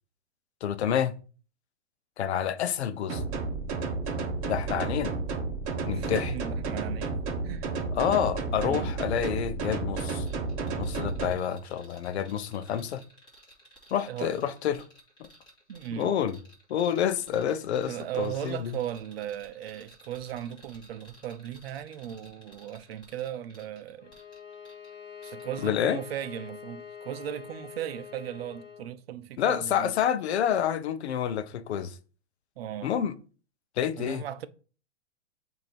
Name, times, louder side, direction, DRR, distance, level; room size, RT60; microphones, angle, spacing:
voice 1, 0.6-1.1 2.2-3.2 4.5-5.1 5.8-6.3 7.9-10.3 10.8-13.0 13.9-14.8 15.2-15.3 16.0-16.4 16.7-18.8 25.6-26.0 29.4-32.0 32.8-33.2 33.8-34.2, left 9 dB, 70° left, 0.7 m, -28 dB
sound 1, 3.1-11.3, right 3 dB, 35° right, 1.2 m, -31 dB
voice 2, 5.9-7.7 8.6-8.9 14.1-14.3 15.7-16.1 17.9-24.1 25.2-29.9 32.6-33.0 34.0-34.5, right 10 dB, 60° right, 0.7 m, -37 dB
sound 2, 10.3-24.9 25.2-25.5, right 1 dB, 10° left, 2.5 m, -56 dB
Bowed string instrument, 24.0-28.9, left 7 dB, 30° left, 1.7 m, -45 dB
7.7 x 2.8 x 4.4 m
hypercardioid pair, 130°, 34 cm